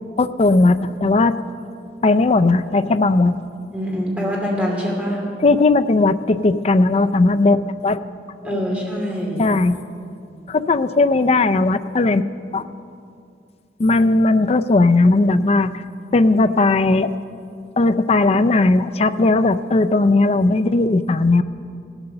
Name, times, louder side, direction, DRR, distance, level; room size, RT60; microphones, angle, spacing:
voice 1, 0.2-1.4 2.0-3.4 5.4-8.0 8.4-8.6 9.4-9.8 10.5-12.2 12.5-12.7 13.8-15.7 16.1-17.1 17.8-21.4, left 2 dB, 35° left, 11 dB, 0.4 m, -17 dB
voice 2, 3.7-5.2 8.4-9.5, equal, 10° right, -3 dB, 2.5 m, -24 dB
17.0 x 8.2 x 6.7 m, 2.5 s
head